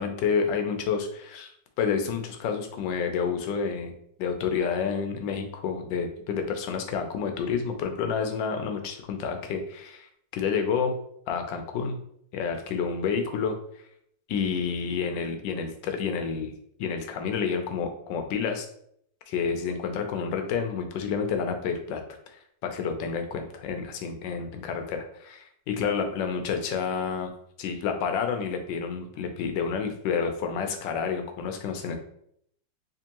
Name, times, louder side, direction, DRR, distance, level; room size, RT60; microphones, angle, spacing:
voice 1, 0.0-1.5 1.8-3.9 4.2-10.9 11.3-12.0 12.3-13.5 14.3-16.5 16.8-18.7 19.3-22.0 22.6-27.3 27.6-32.0, left 6 dB, 75° left, 5 dB, 1.3 m, -29 dB
3.4 x 3.2 x 2.9 m, 0.68 s
omnidirectional pair, 2.1 m